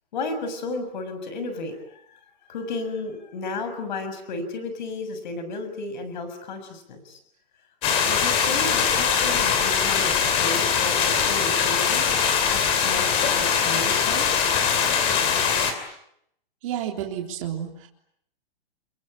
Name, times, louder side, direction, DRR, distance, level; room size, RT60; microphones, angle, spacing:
voice 1, 0.1-2.2 2.5-7.2 8.0-12.1 12.5-14.3, left 3 dB, 50° left, 9 dB, 6.8 m, -33 dB
sound 1, 7.8-15.7, left 7 dB, 20° left, 2.9 m, -22 dB
voice 2, 16.6-17.9, right 10 dB, 35° right, 1 dB, 3.6 m, -31 dB
29.0 x 22.5 x 8.9 m, 0.73 s
hypercardioid pair, 175°, 29 cm